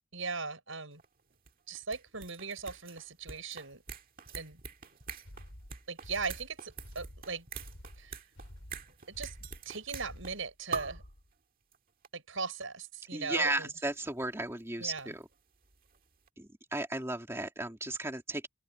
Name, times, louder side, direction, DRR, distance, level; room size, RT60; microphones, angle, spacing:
voice 1, 0.1-1.0 1.7-3.8 4.4-4.6 5.9-7.5 8.0-8.2 9.1-9.3 9.7-11.0 12.1-13.7 14.8-15.1, right 4 dB, 70° right, 5.7 m, -39 dB
sound 1, 1.0-1.1 1.3-10.4 10.7-11.1 11.7-11.8 12.0-12.1 13.4-13.5 14.6-16.0 16.3-16.4, right 6 dB, 45° right, 1.8 m, -45 dB
sound 2, 5.2-11.3, equal, 80° left, 3.9 m, -50 dB
voice 2, 13.1-15.2 16.4-18.5, right 2 dB, 15° right, 2.4 m, -34 dB
open air
head